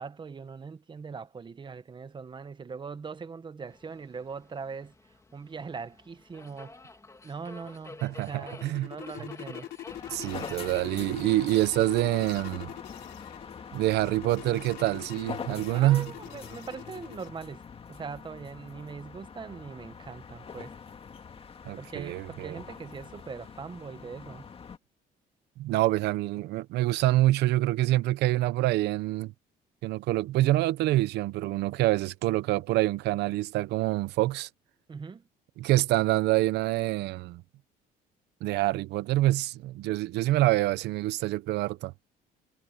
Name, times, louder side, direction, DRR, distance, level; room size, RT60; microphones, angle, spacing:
voice 1, 0.0-4.9 5.3-6.8 7.2-9.7 15.7-17.6 17.9-20.7 21.8-24.4 34.9-35.3, right 5 dB, 30° right, 1.3 m, -41 dB
Subway metro underground, 3.7-14.2, left 3 dB, 20° left, 3.2 m, -51 dB
sound 1, 7.9-17.3, left 14 dB, 75° left, 4.0 m, -44 dB
voice 2, 8.0-8.9 10.1-12.7 13.7-16.1 21.7-22.6 25.6-29.3 29.8-34.5 35.6-37.4 38.4-41.9, right 16 dB, 80° right, 0.9 m, -26 dB
sound 2, 9.9-24.8, left 6 dB, 35° left, 2.0 m, -44 dB
cardioid pair, 110°, 17 cm